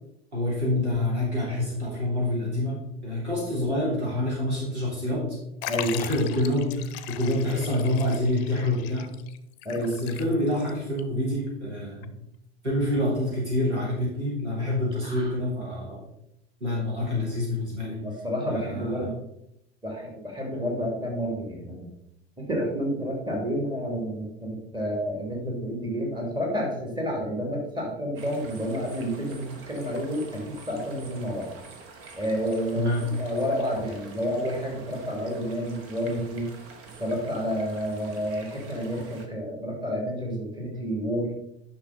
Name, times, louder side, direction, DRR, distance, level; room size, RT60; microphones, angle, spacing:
voice 1, 0.3-5.3 5.9-9.1 9.7-12.1 12.6-16.1 16.6-18.0 18.5-19.1 32.7-33.1, left 1 dB, 80° right, -5 dB, 3.7 m, -27 dB
Liquid, 5.6-10.7 11.0-11.1 12.0-12.1, left 12 dB, 55° left, 0.7 m, -38 dB
voice 2, 18.0-19.1 19.8-21.9 22.4-31.5 32.2-32.9 33.2-36.5 37.0-41.3, equal, 15° right, -1 dB, 2.8 m, -30 dB
sound 1, 28.2-39.3, right 4 dB, 40° right, 1.5 m, -47 dB
10.5 x 5.9 x 4.0 m, 0.79 s
figure-of-eight pair, 70°, 33 cm